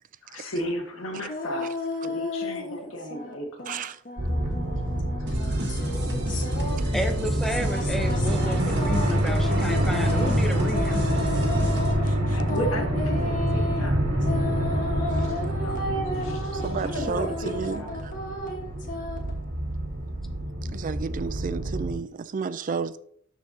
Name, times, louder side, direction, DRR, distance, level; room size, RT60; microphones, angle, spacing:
voice 1, 0.2-3.8 5.4-5.9 6.3-7.0 12.3-14.5 15.2-17.9, equal, 80° left, 1.6 m, -36 dB
sound 1, 1.3-3.3 3.6-19.3, left 2 dB, 40° left, 1.4 m, -34 dB
voice 2, 3.7-4.0 6.8-6.9 15.1-15.5 16.5-18.1 20.7-23.0, right 5 dB, 40° right, 0.4 m, -32 dB
sound 2, 4.2-21.9, right 1 dB, 85° right, 1.8 m, -27 dB
sound 3, 5.3-11.9, right 1 dB, 60° right, 1.7 m, -34 dB
voice 3, 6.9-11.0, equal, ahead, 0.7 m, -31 dB
12.0 x 4.5 x 2.8 m
head